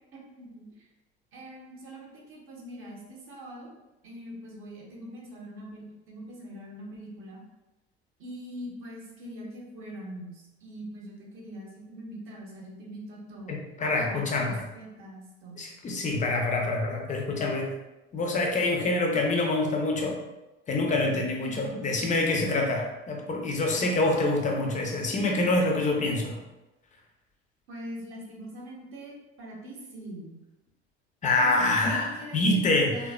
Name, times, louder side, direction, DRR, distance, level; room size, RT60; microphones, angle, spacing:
voice 1, 0.1-0.9 1.3-3.7 4.0-7.4 8.2-13.6 14.0-15.6 21.1-21.9 23.7-24.0 27.7-30.4 31.4-33.1, equal, 40° right, -2 dB, 0.9 m, -43 dB
voice 2, 13.5-14.6 15.6-17.7 18.1-20.1 20.7-26.4 31.2-33.1, left 2 dB, 25° left, 1 dB, 0.6 m, -26 dB
3.2 x 2.2 x 2.3 m, 0.99 s
figure-of-eight pair, 65°, 31 cm